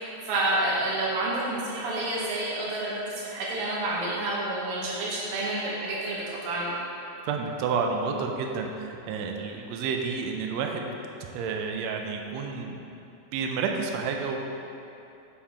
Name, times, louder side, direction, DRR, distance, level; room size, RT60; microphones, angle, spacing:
voice 1, 0.0-6.7, right 2 dB, 70° right, -6 dB, 1.5 m, -29 dB
voice 2, 7.2-10.9 11.3-13.0 13.3-14.4, right 5 dB, 90° right, 3 dB, 1.5 m, -30 dB
6.7 x 5.5 x 4.4 m, 2.8 s
omnidirectional pair, 3.7 m